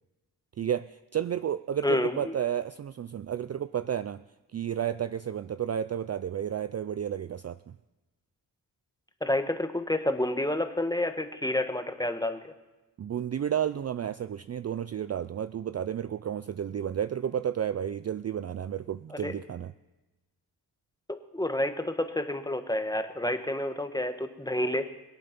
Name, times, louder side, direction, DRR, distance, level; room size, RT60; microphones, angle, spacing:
voice 1, 0.6-4.2 4.5-7.7 13.0-19.7, right 9 dB, 40° right, 14 dB, 0.4 m, -32 dB
voice 2, 1.8-2.3 9.2-12.5 19.1-19.3 21.1-24.9, left 1 dB, 10° left, 8 dB, 1.3 m, -29 dB
22.0 x 8.6 x 5.9 m, 1.1 s
cardioid pair, 85°, 42 cm